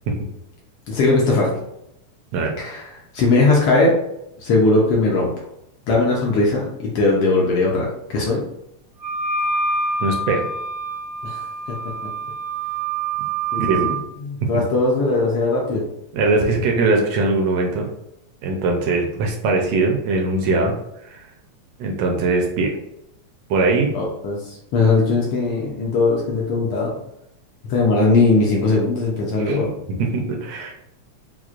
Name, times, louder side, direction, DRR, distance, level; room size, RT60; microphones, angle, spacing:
voice 1, 0.9-1.5 2.6-2.8 3.1-3.9 4.4-5.3 5.9-8.4 11.2-11.4 13.5-15.8 23.9-26.9 27.7-29.7, left 3 dB, 80° left, -3 dB, 1.2 m, -19 dB
Wind instrument woodwind instrument, 9.0-14.0, right 3 dB, 60° left, 0.9 m, -26 dB
voice 2, 10.0-10.5 13.6-13.9 14.5-14.6 16.1-17.9 18.4-20.7 21.1-21.2 21.8-22.7 23.5-23.9 29.5-29.6 30.0-30.7, right 3 dB, 75° right, 1 dB, 1.6 m, -20 dB
6.0 x 2.1 x 2.4 m, 0.82 s
omnidirectional pair, 3.4 m